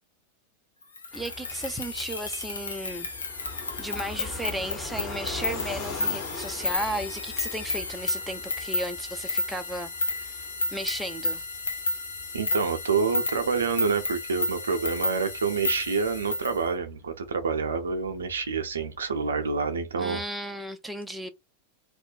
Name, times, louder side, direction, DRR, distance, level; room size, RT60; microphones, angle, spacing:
sound 1, 1.0-16.6, left 2 dB, 75° left, 0.5 m, -32 dB
Fixed-wing aircraft airplane, 1.1-19.5, left 3 dB, 30° left, 1.1 m, -43 dB
voice 1, 1.1-3.1 3.8-11.4 20.0-21.3, right 1 dB, 5° right, 0.4 m, -35 dB
voice 2, 12.3-20.2, right 5 dB, 70° right, 0.5 m, -27 dB
2.4 x 2.1 x 2.7 m
figure-of-eight pair, 90°, 0 cm